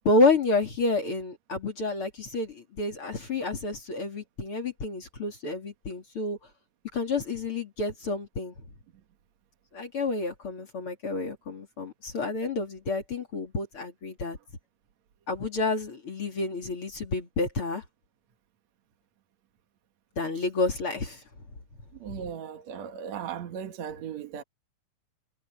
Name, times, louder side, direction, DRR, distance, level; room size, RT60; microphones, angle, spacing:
voice 1, 0.1-6.4 6.9-8.5 9.7-14.4 15.3-17.8 20.2-21.2, left 3 dB, 40° left, 3.6 m, -29 dB
voice 2, 22.0-24.4, right 8 dB, 60° right, 2.6 m, -37 dB
omnidirectional pair, 3.8 m